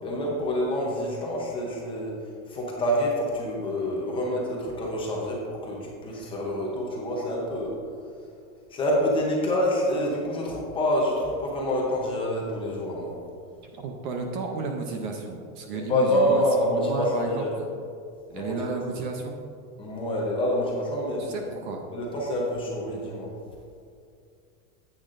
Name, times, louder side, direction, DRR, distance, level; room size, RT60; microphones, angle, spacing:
voice 1, 0.0-2.2 2.5-7.8 8.7-13.2 15.7-17.5 18.3-18.6 19.8-21.3 21.9-23.3, left 1 dB, 10° left, -3 dB, 0.7 m, -27 dB
voice 2, 13.6-16.4 16.8-17.6 18.3-19.4 21.2-21.8, right 4 dB, 35° right, 3 dB, 0.6 m, -32 dB
10.0 x 8.5 x 2.5 m, 2.4 s
supercardioid pair, 175°, 42 cm